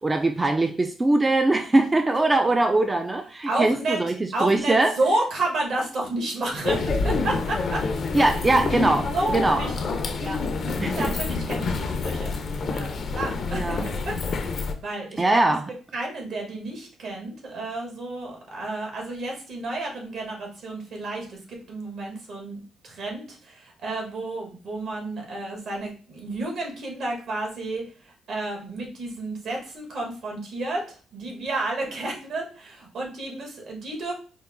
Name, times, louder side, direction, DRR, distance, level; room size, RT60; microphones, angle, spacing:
voice 1, 0.0-4.1 4.4-4.9 8.1-9.6 10.8-11.1 13.5-13.9 15.2-15.6, right 2 dB, 20° right, 5 dB, 0.3 m, -22 dB
voice 2, 3.5-4.0 4.3-7.8 9.1-9.8 10.2-12.4 12.6-14.5 14.8-15.4 15.9-34.1, right 2 dB, 65° right, 0 dB, 1.3 m, -31 dB
sound 1, 6.6-14.7, left 4 dB, 50° left, 0.5 m, -27 dB
4.5 x 2.0 x 3.5 m, 0.38 s
cardioid pair, 90°, 0 cm